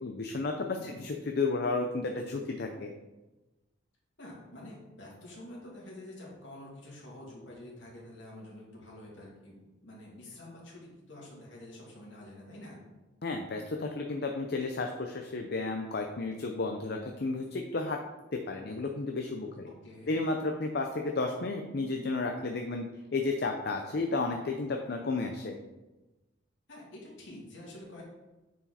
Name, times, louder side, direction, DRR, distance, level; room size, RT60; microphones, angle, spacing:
voice 1, 0.0-2.9 13.2-18.0 18.3-19.7 20.1-22.8 23.1-25.6, left 3 dB, 55° left, 3 dB, 0.6 m, -32 dB
voice 2, 4.2-12.8 19.8-20.2 26.7-28.0, left 1 dB, 70° left, -4 dB, 2.6 m, -48 dB
9.1 x 4.8 x 4.1 m, 1.1 s
head